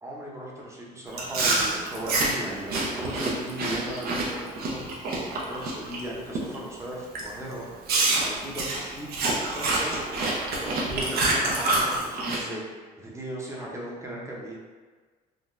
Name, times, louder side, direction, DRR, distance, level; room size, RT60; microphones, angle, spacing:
voice 1, 0.0-4.8 5.1-7.8 8.2-9.9 10.5-14.6, right 1 dB, 15° right, -4 dB, 0.7 m, -37 dB
Chewing mastication, 1.1-6.0 6.3-6.7 7.1-7.3 7.9-12.4, right 2 dB, 65° right, 0.7 m, -27 dB
3.8 x 2.2 x 2.5 m, 1.4 s
cardioid pair, 110°, 17 cm